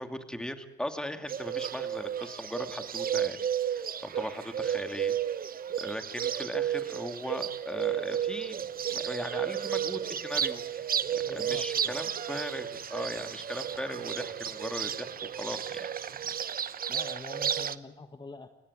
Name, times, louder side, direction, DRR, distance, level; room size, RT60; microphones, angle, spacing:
voice 1, 0.0-5.4 5.8-8.6 8.9-15.9, equal, 5° left, 7 dB, 2.5 m, -39 dB
Bird, 1.3-17.8, right 9 dB, 45° right, 1.0 m, -33 dB
sound 1, 8.4-16.4, right 6 dB, 75° right, 4.4 m, -60 dB
voice 2, 11.3-12.1 16.9-18.5, left 3 dB, 20° left, 7 dB, 1.5 m, -45 dB
30.0 x 17.0 x 9.9 m, 1.1 s
cardioid pair, 90°, 20 cm